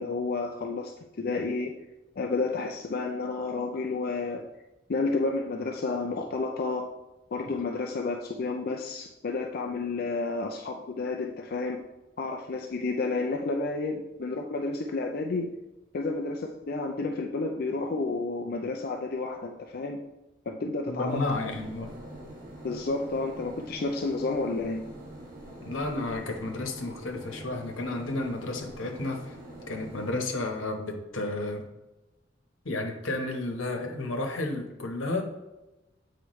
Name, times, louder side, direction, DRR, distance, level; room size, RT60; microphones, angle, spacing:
voice 1, 0.0-1.7 2.2-4.4 4.9-6.9 7.3-11.8 12.2-15.5 15.9-20.0 20.5-21.2 22.6-24.8, left 3 dB, 50° left, 3 dB, 0.5 m, -31 dB
voice 2, 20.9-21.9 25.6-29.4 29.7-31.6 32.6-35.2, left 2 dB, 90° left, 3 dB, 1.1 m, -32 dB
sound 1, 21.1-30.1, right 1 dB, 45° right, 1.6 m, -44 dB
7.9 x 4.8 x 3.1 m, 1.0 s
head